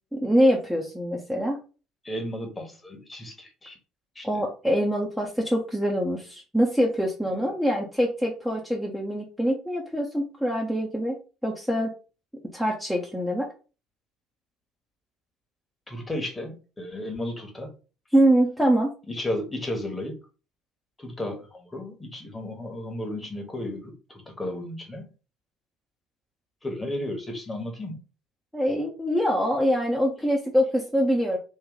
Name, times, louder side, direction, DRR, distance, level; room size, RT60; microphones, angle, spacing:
voice 1, 0.1-1.6 4.2-11.9 12.5-13.5 18.1-18.9 28.5-31.4, equal, ahead, -2 dB, 0.9 m, -24 dB
voice 2, 2.0-3.8 4.1-4.3 7.3-7.4 15.9-17.7 19.1-20.1 21.0-25.1 26.6-28.0, left 1 dB, 15° left, 4 dB, 1.3 m, -34 dB
3.2 x 2.6 x 4.0 m, 0.34 s
figure-of-eight pair, 60°, 0 cm